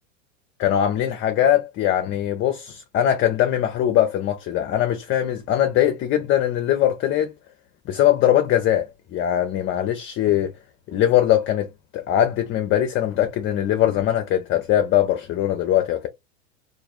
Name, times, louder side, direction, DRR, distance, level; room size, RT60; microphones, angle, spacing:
voice 1, 0.6-7.3 7.9-10.6 10.9-16.1, left 11 dB, 35° left, 0.5 m, -21 dB
3.3 x 2.5 x 2.4 m
hypercardioid pair, 105°, 38 cm